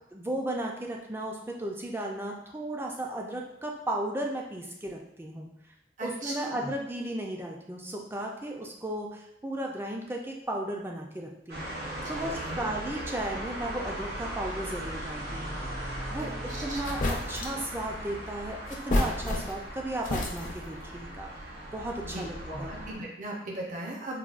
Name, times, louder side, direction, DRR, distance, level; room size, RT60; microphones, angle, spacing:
voice 1, 0.1-5.5 6.0-11.7 12.1-15.6 16.1-16.3 16.6-18.6 18.8-21.3 21.7-22.8, right 1 dB, 15° right, 0 dB, 0.4 m, -35 dB
voice 2, 6.0-6.7 12.2-12.7 16.2-17.1 22.0-24.2, right 1 dB, 45° right, -2 dB, 0.7 m, -39 dB
sound 1, 11.5-22.9, right 1 dB, 75° right, 1.2 m, -38 dB
sound 2, 16.4-16.5 16.8-17.7 18.7-19.7 20.0-20.7, left 1 dB, 45° left, 0.5 m, -30 dB
4.7 x 2.2 x 2.4 m, 0.84 s
head